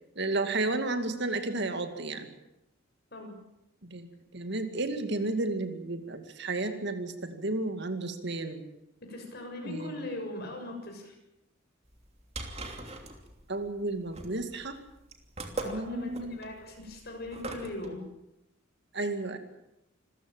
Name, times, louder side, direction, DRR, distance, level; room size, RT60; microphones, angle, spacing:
voice 1, 0.2-2.3 3.8-8.6 9.6-10.0 13.5-14.8 15.6-16.4 18.9-19.4, right 2 dB, 55° right, 8 dB, 2.3 m, -32 dB
voice 2, 9.1-11.1 15.6-18.0, left 2 dB, 50° left, 3 dB, 6.9 m, -40 dB
sound 1, 11.9-17.9, right 2 dB, 30° right, 2.9 m, -41 dB
27.0 x 15.0 x 9.0 m, 0.86 s
head